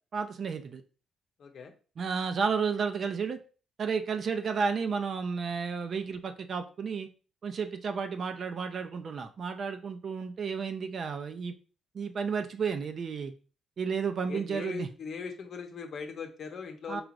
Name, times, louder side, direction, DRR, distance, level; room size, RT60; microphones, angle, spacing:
voice 1, 0.1-0.8 2.0-3.4 3.8-7.1 7.4-11.6 11.9-13.3 13.8-14.9 16.9-17.0, right 5 dB, 50° right, 8 dB, 0.5 m, -32 dB
voice 2, 1.4-1.7 14.3-17.0, left 5 dB, 55° left, 4 dB, 0.8 m, -40 dB
4.7 x 2.9 x 2.5 m, 0.37 s
cardioid pair, 90°, 0 cm